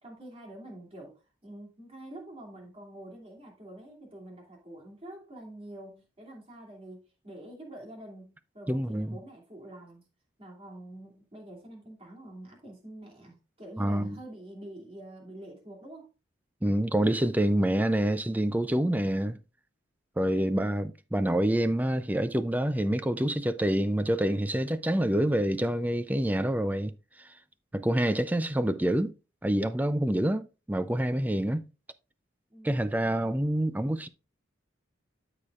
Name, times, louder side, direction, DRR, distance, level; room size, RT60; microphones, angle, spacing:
voice 1, 0.0-10.0 10.4-16.1 20.4-20.7 32.5-33.2, right 1 dB, 30° right, 2.5 m, -46 dB
voice 2, 8.7-9.2 13.8-14.2 16.6-19.4 20.2-26.9 27.2-27.3 27.7-29.1 29.4-31.7 32.6-34.1, right 1 dB, 10° right, 0.4 m, -27 dB
12.5 x 5.0 x 2.4 m
head